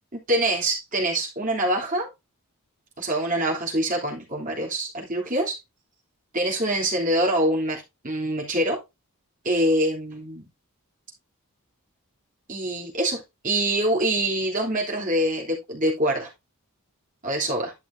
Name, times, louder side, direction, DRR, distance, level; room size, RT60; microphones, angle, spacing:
voice 1, 0.1-2.1 3.0-5.6 6.3-8.8 9.4-10.5 12.5-16.3 17.2-17.7, right 1 dB, 35° right, 3.2 m, -25 dB
11.5 x 6.2 x 2.7 m
head